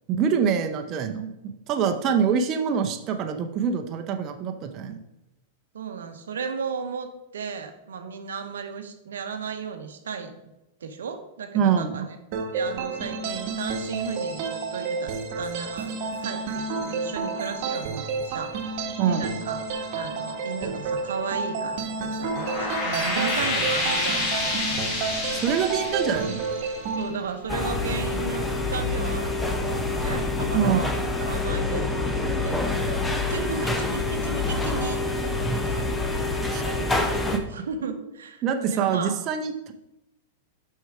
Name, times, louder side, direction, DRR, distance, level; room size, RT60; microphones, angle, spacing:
voice 1, 0.1-5.0 11.5-12.0 19.0-19.3 25.3-26.4 30.5-30.8 36.5-36.6 38.4-39.7, right 7 dB, 40° right, 5 dB, 0.7 m, -25 dB
voice 2, 5.7-10.4 10.8-12.1 12.5-18.7 19.0-19.7 19.9-24.8 27.0-35.9 36.6-37.2 37.5-39.2, right 6 dB, 80° right, 7 dB, 0.8 m, -35 dB
sound 1, 12.3-27.1, right 4 dB, 55° right, 1.2 m, -30 dB
sound 2, 22.1-27.4, left 2 dB, 40° left, 2.1 m, -28 dB
sound 3, 27.5-37.4, left 2 dB, 10° left, 0.9 m, -26 dB
6.2 x 5.6 x 4.9 m, 0.92 s
hypercardioid pair, 110°, 0 cm